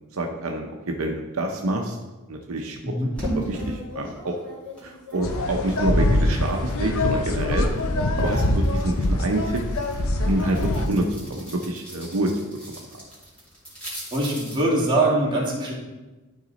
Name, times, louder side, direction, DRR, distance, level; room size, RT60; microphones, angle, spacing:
voice 1, 0.1-2.0 2.3-2.8 3.3-4.3 4.8-7.7 8.1-9.6 10.2-12.3 12.7-13.0, right 1 dB, 70° right, 2 dB, 0.7 m, -27 dB
sound 1, 3.2-7.1 7.4-14.6, equal, 5° left, 2.7 m, -38 dB
sound 2, 5.2-10.9, left 1 dB, 70° left, 0.8 m, -23 dB
voice 2, 14.1-15.7, right 1 dB, 20° right, -5 dB, 2.1 m, -22 dB
12.0 x 4.0 x 4.0 m, 1.2 s
head